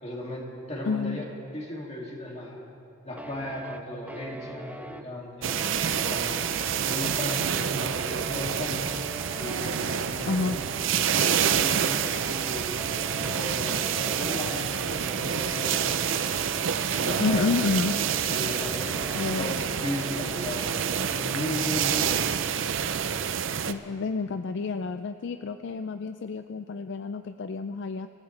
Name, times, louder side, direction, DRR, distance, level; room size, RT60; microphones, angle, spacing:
voice 1, 0.0-1.2 1.5-2.6 3.0-6.4 6.7-8.9 9.4-10.6 10.9-12.8 13.2-16.5 16.9-17.5 18.3-19.0 19.4-19.5 19.8-20.7 21.1-22.2, left 1 dB, 30° left, -2 dB, 2.4 m, -36 dB
voice 2, 0.8-1.2 10.3-10.7 17.2-18.1 19.1-19.6 23.7-28.1, left 4 dB, 60° left, 9 dB, 0.4 m, -29 dB
sound 1, 3.2-22.3, right 1 dB, 5° right, 0.4 m, -43 dB
sound 2, 5.4-23.7, right 8 dB, 65° right, 0.5 m, -28 dB
25.0 x 15.0 x 3.3 m, 2.7 s
head